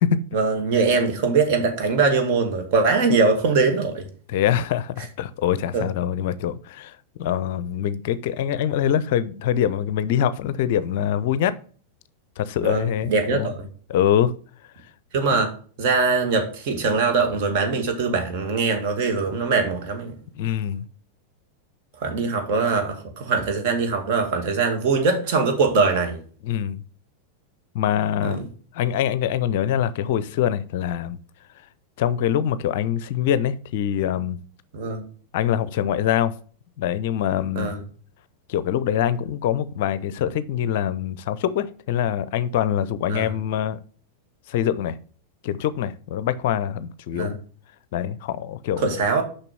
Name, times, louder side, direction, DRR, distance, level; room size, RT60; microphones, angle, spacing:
voice 1, 0.3-4.0 5.7-5.9 12.6-13.7 15.1-15.5 15.8-20.1 22.0-26.2 28.2-28.5 34.7-35.0 37.6-37.8 43.1-43.3 47.1-47.4 48.8-49.2, right 4 dB, 45° right, 2.0 m, -22 dB
voice 2, 4.3-11.5 12.4-13.5 13.9-14.3 15.3-15.4 20.4-20.8 26.4-26.8 27.7-28.4 28.7-31.2 32.0-34.4 35.3-36.3 36.8-37.7 38.5-43.8 44.5-45.0 45.4-47.4 47.9-48.9, left 10 dB, 50° left, 0.5 m, -24 dB
6.8 x 5.6 x 6.0 m
figure-of-eight pair, 90°, 0 cm